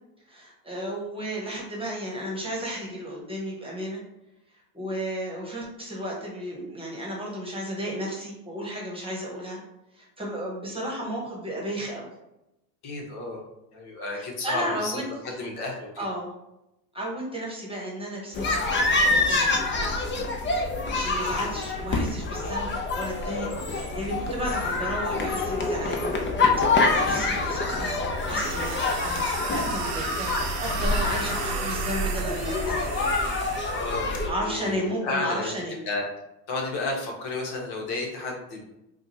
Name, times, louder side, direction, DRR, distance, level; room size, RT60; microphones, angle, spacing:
voice 1, 0.3-4.0 4.7-9.6 9.9-12.1 14.1-15.0 16.0-16.3 16.9-18.7 19.1-20.2 20.9-28.0 28.3-29.2 29.5-33.0 34.3-35.8, equal, 10° right, -3 dB, 1.2 m, -33 dB
voice 2, 12.8-13.4 13.7-16.1 33.7-35.5 35.8-36.0 36.5-38.6, left 2 dB, 55° left, -1 dB, 1.2 m, -32 dB
sound 1, 18.3-34.3, left 3 dB, 25° left, 0.6 m, -26 dB
sound 2, 28.2-34.1, right 6 dB, 85° right, 0.8 m, -35 dB
5.0 x 2.4 x 2.8 m, 0.90 s
supercardioid pair, 95°, 46 cm